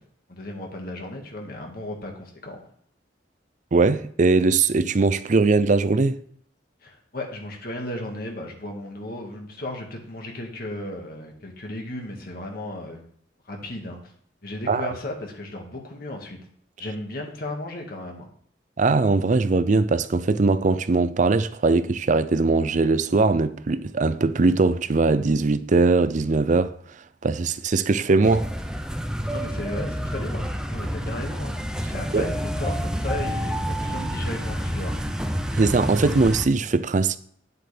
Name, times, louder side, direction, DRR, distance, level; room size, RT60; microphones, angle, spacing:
voice 1, 0.3-2.6 6.8-13.0 13.5-14.1 14.4-16.4 16.8-18.3 29.3-35.0, left 1 dB, 55° left, 1.8 m, -35 dB
voice 2, 3.7-6.2 14.7-14.9 18.8-26.7 27.2-28.5 32.1-32.3 35.5-37.2, right 3 dB, 45° right, 0.5 m, -20 dB
sound 1, 28.2-36.5, equal, 5° right, 0.7 m, -28 dB
9.8 x 7.8 x 3.4 m
head